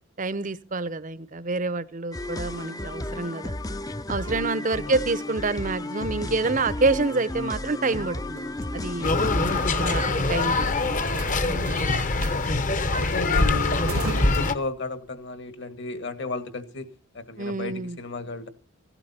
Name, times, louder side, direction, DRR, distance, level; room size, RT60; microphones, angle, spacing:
voice 1, 0.2-3.5 4.1-8.5 8.7-9.1 9.7-12.0 17.4-18.0, right 3 dB, 35° right, 0.7 m, -28 dB
sound 1, 2.1-9.8, left 1 dB, 15° left, 0.6 m, -33 dB
sound 2, 7.9-15.2, right 3 dB, 75° right, 1.2 m, -40 dB
sound 3, 9.0-14.5, left 2 dB, 35° left, 1.0 m, -24 dB
voice 2, 9.5-9.9 12.2-18.5, left 3 dB, 50° left, 1.7 m, -34 dB
16.0 x 12.0 x 4.3 m
head